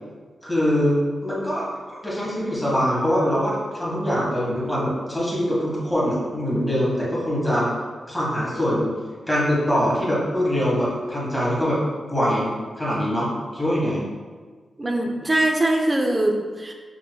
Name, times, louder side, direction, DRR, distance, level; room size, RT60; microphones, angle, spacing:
voice 1, 0.4-7.7 8.1-9.0 9.3-11.8 12.1-14.1, equal, 5° left, -6 dB, 1.4 m, -23 dB
voice 2, 14.8-16.7, right 1 dB, 20° right, 3 dB, 0.5 m, -22 dB
6.1 x 3.0 x 2.2 m, 1.5 s
wide cardioid pair, 105°, 0 cm